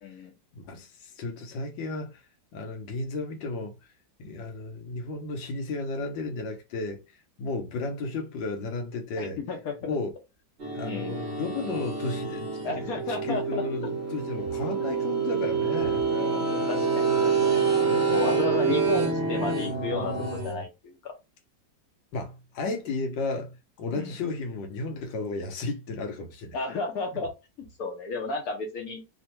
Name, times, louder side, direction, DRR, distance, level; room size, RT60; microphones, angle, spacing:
voice 1, 0.5-2.2 2.5-3.8 4.2-7.0 7.4-9.4 9.8-10.1 10.7-16.1 22.1-23.5 23.8-26.6, left 3 dB, 90° left, 1.5 m, -33 dB
voice 2, 9.2-10.0 10.8-11.2 12.6-13.9 16.1-17.7 18.1-21.1 23.9-24.1 26.5-27.3 27.8-29.0, left 3 dB, 65° left, 1.0 m, -33 dB
sound 1, 10.6-20.6, right 5 dB, 50° right, 0.9 m, -27 dB
3.4 x 2.1 x 2.9 m
omnidirectional pair, 2.0 m